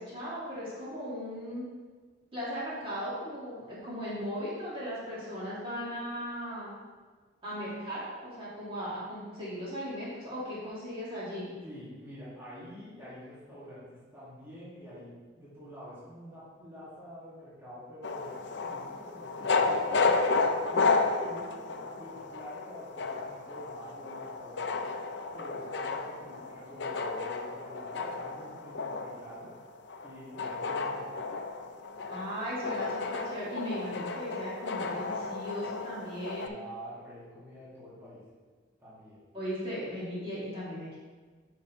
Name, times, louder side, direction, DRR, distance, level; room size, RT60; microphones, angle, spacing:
voice 1, 0.0-1.6 2.3-6.7 7.4-11.5 32.1-36.5 39.3-40.9, equal, 30° right, -9 dB, 1.9 m, -37 dB
voice 2, 11.6-20.3 20.7-24.8 25.3-29.5 30.0-31.2 36.4-38.2 38.8-39.2, equal, 10° right, -10 dB, 2.0 m, -47 dB
sound 1, 18.0-36.5, left 3 dB, 60° left, 0.5 m, -32 dB
8.3 x 5.4 x 3.1 m, 1.4 s
head